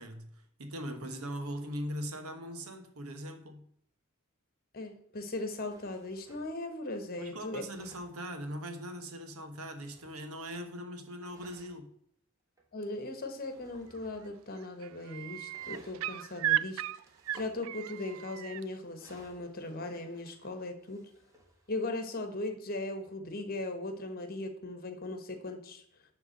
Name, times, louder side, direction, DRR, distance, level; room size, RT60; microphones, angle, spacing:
voice 1, 0.0-3.6 7.2-11.9, equal, 90° right, 1.3 m, -40 dB
voice 2, 4.7-7.6 12.7-16.8 17.3-21.0 21.7-25.8, left 2 dB, 45° left, 1.3 m, -38 dB
sound 1, 5.7-6.6 7.5-8.2 9.4-10.5 11.2-11.8 12.6-12.7 13.1-14.3 15.5-16.1 17.0-17.6 18.9-19.8 20.7-21.9, equal, 15° right, 1.5 m, -58 dB
sound 2, 13.9-14.3 14.6-18.6 20.3-20.4, right 13 dB, 65° right, 0.3 m, -35 dB
10.0 x 3.6 x 6.4 m
head